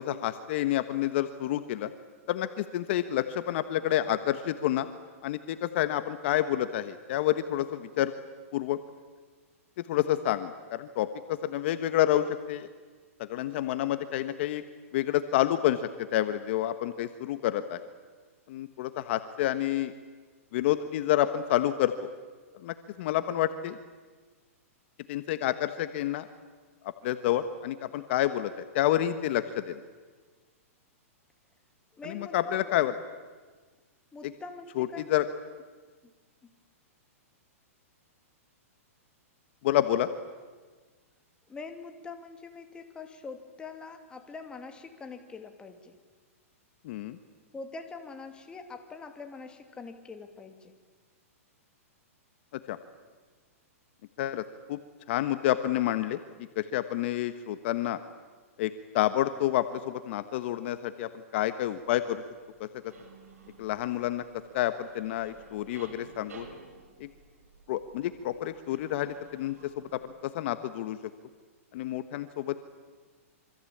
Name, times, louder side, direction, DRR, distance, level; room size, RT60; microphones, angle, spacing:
voice 1, 0.0-1.9 2.3-4.9 5.2-8.1 8.5-8.8 9.9-12.7 13.2-14.6 14.9-17.8 18.5-19.9 20.5-21.9 22.6-23.8 25.1-26.3 27.0-29.8 32.0-32.9 34.2-34.3 34.8-35.3 39.6-40.1 46.8-47.2 52.5-52.8 54.2-54.4 54.7-54.8 55.1-56.2 56.5-58.0 58.6-62.2 62.6-62.9 63.6-64.2 64.5-66.5 67.0-67.1 67.7-71.0 71.7-72.6, left 13 dB, 50° left, 11 dB, 1.3 m, -29 dB
voice 2, 31.9-32.7 34.1-35.1 41.5-46.0 47.5-50.8, left 4 dB, 10° left, 5 dB, 2.6 m, -44 dB
sound 1, 61.6-70.2, right 4 dB, 85° right, 6.5 m, -54 dB
26.5 x 25.0 x 8.7 m, 1.4 s
hypercardioid pair, 145°, 8 cm